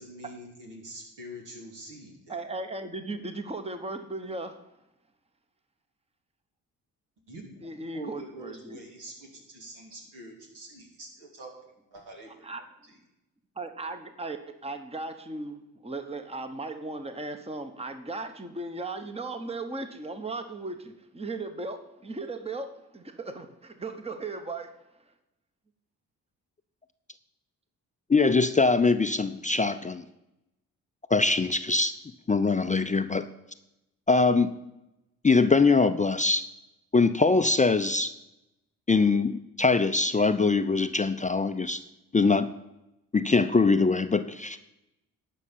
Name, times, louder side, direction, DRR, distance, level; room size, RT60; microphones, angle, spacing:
voice 1, 0.0-2.3 7.3-7.5 7.9-11.5 11.9-12.6, right 1 dB, 70° right, -1 dB, 3.3 m, -45 dB
voice 2, 2.3-4.6 7.6-8.8 12.4-12.6 13.6-14.4 14.6-24.7, right 3 dB, 15° right, 9 dB, 1.1 m, -37 dB
voice 3, 28.1-30.0 31.1-31.9 32.3-33.3 34.1-34.5 35.2-36.4 36.9-38.1 38.9-41.8 42.1-42.5 43.1-44.6, left 4 dB, 20° left, 10 dB, 0.6 m, -22 dB
11.5 x 5.4 x 8.5 m, 0.90 s
hypercardioid pair, 45°, 43 cm